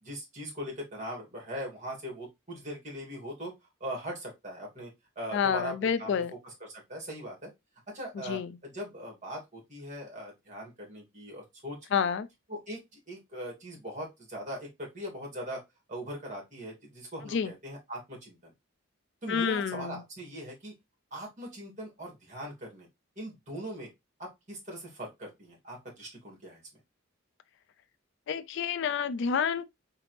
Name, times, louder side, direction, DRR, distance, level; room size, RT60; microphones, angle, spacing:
voice 1, 0.0-3.5 3.8-4.9 5.2-7.5 7.9-12.1 12.5-15.6 15.9-18.5 19.2-20.7 21.1-22.9 23.2-23.9 24.2-26.6, equal, 35° right, 2.2 m, -40 dB
voice 2, 5.3-6.3 8.2-8.5 11.9-12.3 17.3-17.5 19.3-20.0 28.3-29.6, left 6 dB, 55° left, 0.3 m, -29 dB
3.9 x 3.3 x 3.1 m
head